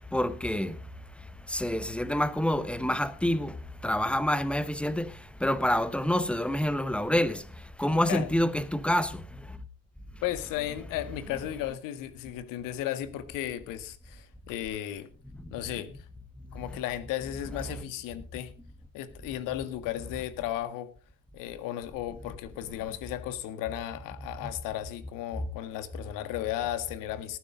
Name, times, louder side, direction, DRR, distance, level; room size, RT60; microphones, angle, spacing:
voice 1, 0.1-0.8 1.5-3.6 3.8-7.5 7.8-9.6 15.4-15.5 16.5-16.6 24.4-24.5, left 1 dB, 5° left, 1.1 m, -27 dB
voice 2, 10.2-15.1 15.5-16.0 16.5-18.5 18.9-20.9 21.3-27.4, left 12 dB, 50° left, 1.7 m, -35 dB
18.5 x 9.7 x 3.8 m
figure-of-eight pair, 75°, 41 cm